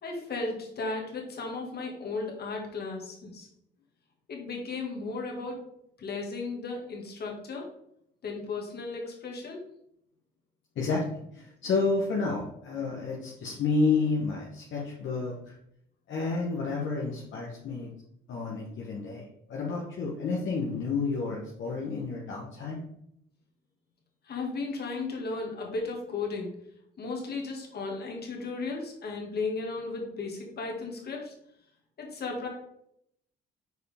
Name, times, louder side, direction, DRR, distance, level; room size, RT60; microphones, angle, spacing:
voice 1, 0.0-3.5 4.3-5.6 6.0-7.7 8.2-9.6 24.2-26.5 27.0-31.3 32.0-32.5, left 3 dB, 55° left, 0 dB, 1.8 m, -35 dB
voice 2, 10.7-15.5 16.1-17.9 18.3-22.8, left 4 dB, 70° left, -3 dB, 1.2 m, -30 dB
6.3 x 4.7 x 3.5 m, 0.74 s
cardioid pair, 90°, 20 cm